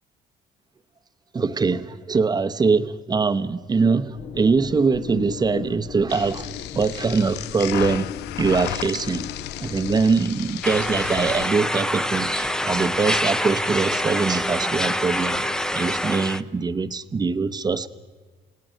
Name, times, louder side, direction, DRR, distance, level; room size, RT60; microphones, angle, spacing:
voice 1, 1.3-9.3 9.6-15.4 15.7-17.9, right 4 dB, 25° right, 1.0 m, -23 dB
sound 1, 4.1-10.0, left 8 dB, 60° left, 1.6 m, -37 dB
sound 2, 6.1-11.5, left 15 dB, 85° left, 0.5 m, -34 dB
sound 3, 10.6-16.4, equal, 5° left, 0.6 m, -25 dB
29.5 x 17.0 x 6.4 m
cardioid pair, 110°, 17 cm